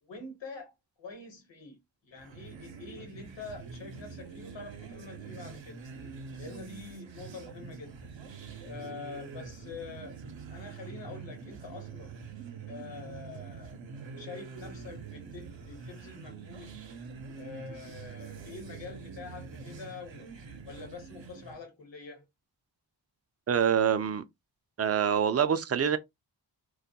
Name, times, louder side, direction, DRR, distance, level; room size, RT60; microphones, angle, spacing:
voice 1, 0.0-5.8 6.4-8.1 8.6-10.2 10.5-12.2 12.7-13.8 14.2-16.8 17.3-20.3 20.6-22.2, left 4 dB, 70° left, 1.1 m, -45 dB
sound 1, 2.1-21.6, right 5 dB, 75° right, 0.7 m, -45 dB
voice 2, 23.5-24.2 24.8-26.0, right 8 dB, 35° right, 0.4 m, -25 dB
2.3 x 2.2 x 2.7 m
wide cardioid pair, 65°, 45 cm